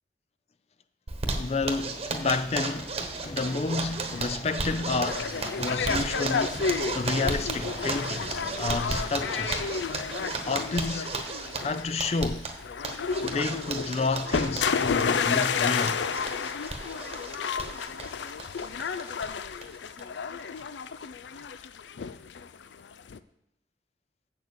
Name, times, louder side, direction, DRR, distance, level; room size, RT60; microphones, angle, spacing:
Zipper (clothing), 1.1-19.3 19.6-19.7 20.0-20.1 20.4-20.9, right 3 dB, 35° right, 1.1 m, -35 dB
voice 1, 1.3-9.7 10.5-11.2 11.6-12.5 13.2-16.0, left 3 dB, 35° left, 0.4 m, -30 dB
sound 1, 2.8-11.1, left 2 dB, 75° left, 1.4 m, -45 dB
sound 2, 5.1-23.2, left 6 dB, 90° left, 0.5 m, -31 dB
7.9 x 6.7 x 6.9 m
head